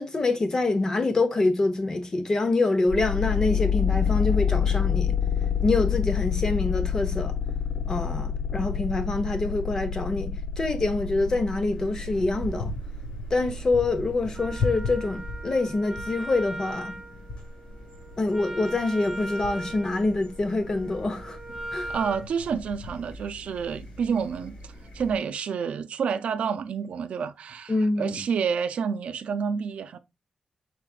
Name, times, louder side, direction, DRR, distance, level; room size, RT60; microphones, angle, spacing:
voice 1, 0.0-5.2 5.6-7.3 7.9-12.7 13.3-17.0 18.2-21.4 21.7-21.9 27.7-28.2, left 2 dB, 30° left, 0.8 m, -26 dB
sound 1, 2.9-15.5, left 7 dB, 90° left, 0.8 m, -28 dB
sound 2, 11.7-25.2, left 3 dB, 60° left, 2.2 m, -39 dB
Wind instrument woodwind instrument, 14.3-22.3, right 1 dB, 15° right, 0.6 m, -39 dB
voice 2, 21.9-30.0, right 6 dB, 90° right, 0.4 m, -29 dB
4.8 x 4.7 x 2.4 m
wide cardioid pair, 170°, 2 cm